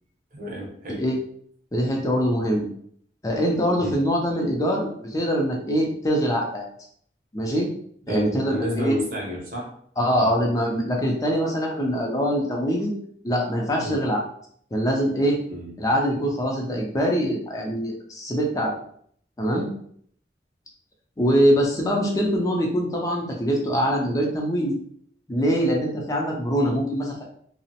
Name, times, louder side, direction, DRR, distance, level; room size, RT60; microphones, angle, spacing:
voice 1, 0.3-1.1 3.8-4.0 8.1-9.7 10.2-10.3 13.8-14.0 15.5-15.7, equal, 50° right, -2 dB, 0.7 m, -30 dB
voice 2, 1.7-2.7 3.2-6.7 7.3-7.7 8.1-8.9 10.0-12.9 13.2-14.2 14.7-15.4 15.8-18.8 19.4-19.7 21.2-24.8 25.3-27.2, equal, 20° left, 0 dB, 0.4 m, -23 dB
2.9 x 2.0 x 2.8 m, 0.63 s
head